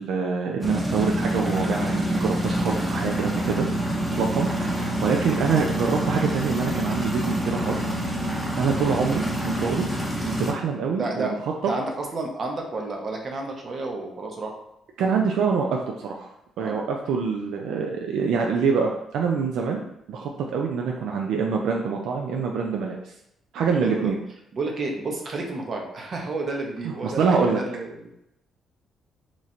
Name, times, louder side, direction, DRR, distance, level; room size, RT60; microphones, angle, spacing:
voice 1, 0.0-3.7 4.1-7.8 8.6-11.3 15.0-16.3 16.6-19.8 20.1-23.1 23.5-24.2 26.8-27.6, right 5 dB, 80° right, 0 dB, 0.4 m, -25 dB
sound 1, 0.6-10.5, right 1 dB, 10° right, 0.8 m, -27 dB
voice 2, 11.0-11.9 12.1-14.5 16.6-16.8 19.7-19.8 23.8-24.1 24.5-28.1, right 3 dB, 45° right, 1 dB, 0.8 m, -31 dB
3.0 x 2.5 x 4.2 m, 0.81 s
cardioid pair, 90°, 0 cm